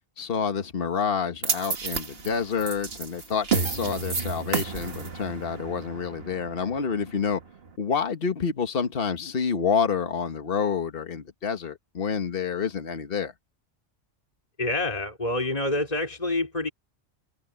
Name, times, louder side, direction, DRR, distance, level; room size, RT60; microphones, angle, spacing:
voice 1, 0.2-7.4 7.8-13.3, left 6 dB, 45° left, 1.6 m, -28 dB
sound 1, 1.4-7.7, right 5 dB, 50° right, 1.7 m, -31 dB
voice 2, 14.6-16.7, left 2 dB, 30° left, 4.0 m, -27 dB
omnidirectional pair, 1.4 m